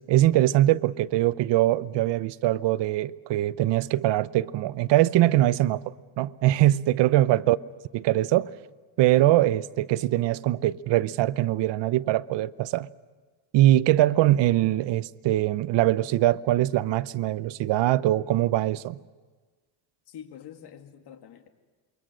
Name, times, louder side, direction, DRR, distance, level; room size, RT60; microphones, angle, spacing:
voice 1, 0.1-7.6 7.9-8.5 9.0-12.9 13.5-19.0, right 14 dB, 65° right, 0.8 m, -22 dB
voice 2, 20.1-21.5, left 9 dB, 55° left, 2.3 m, -46 dB
28.0 x 23.5 x 6.4 m
cardioid pair, 120°, 47 cm